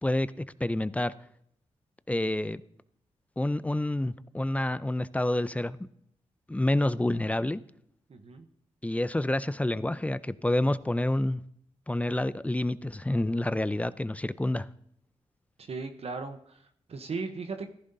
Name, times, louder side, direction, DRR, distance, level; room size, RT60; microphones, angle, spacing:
voice 1, 0.0-1.1 2.1-2.6 3.4-5.8 6.5-7.6 8.8-11.4 11.9-14.7, left 1 dB, 10° left, 0.4 m, -28 dB
voice 2, 8.1-8.5 15.6-17.7, right 4 dB, 60° right, 0.8 m, -37 dB
14.5 x 11.0 x 2.7 m
cardioid pair, 50°, 12 cm